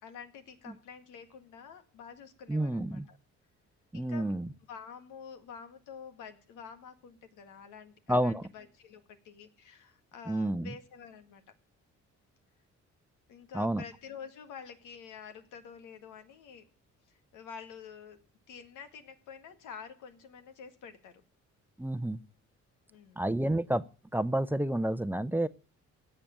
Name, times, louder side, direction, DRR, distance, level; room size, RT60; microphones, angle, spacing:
voice 1, 0.0-3.2 3.9-4.3 4.7-11.5 13.3-16.6 17.1-18.2 18.5-21.2 22.9-23.3, left 7 dB, 90° left, 8 dB, 2.0 m, -48 dB
voice 2, 2.5-3.1 3.9-4.5 8.1-8.4 10.3-10.7 13.5-13.8 21.8-22.2 23.2-23.8 24.1-25.5, right 1 dB, 5° right, 13 dB, 0.7 m, -29 dB
17.5 x 6.9 x 8.9 m, 0.36 s
cardioid pair, 90°, 30 cm